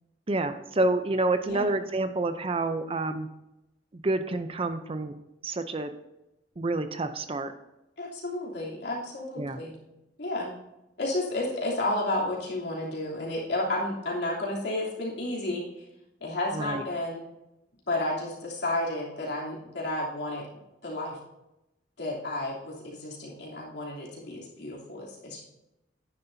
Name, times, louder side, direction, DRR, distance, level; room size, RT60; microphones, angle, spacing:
voice 1, 0.3-3.3 3.9-5.1 5.4-5.9 6.6-7.5 9.4-9.6 16.5-16.8, right 2 dB, 30° right, 9 dB, 0.5 m, -28 dB
voice 2, 8.0-9.8 10.2-10.5 11.0-15.8 16.2-17.2 17.9-20.5 20.8-21.2 22.0-25.4, left 1 dB, 65° left, -4 dB, 3.1 m, -32 dB
10.5 x 9.8 x 2.7 m, 0.92 s
head